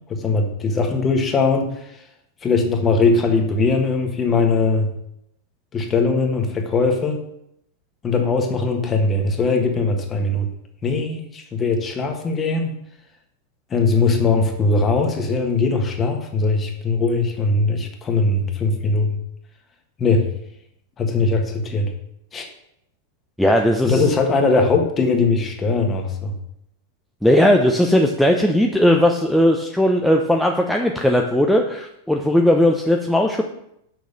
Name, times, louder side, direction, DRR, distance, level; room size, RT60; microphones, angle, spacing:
voice 1, 0.0-2.0 2.4-4.9 5.7-7.2 8.0-10.5 10.8-12.7 13.7-19.2 20.0-20.3 21.0-21.9 22.3-22.5 23.8-26.3, left 3 dB, 25° left, 4 dB, 1.6 m, -20 dB
voice 2, 23.4-24.0 27.2-33.4, left 1 dB, ahead, 2 dB, 0.8 m, -17 dB
6.7 x 6.3 x 6.9 m, 0.78 s
figure-of-eight pair, 90°, 0 cm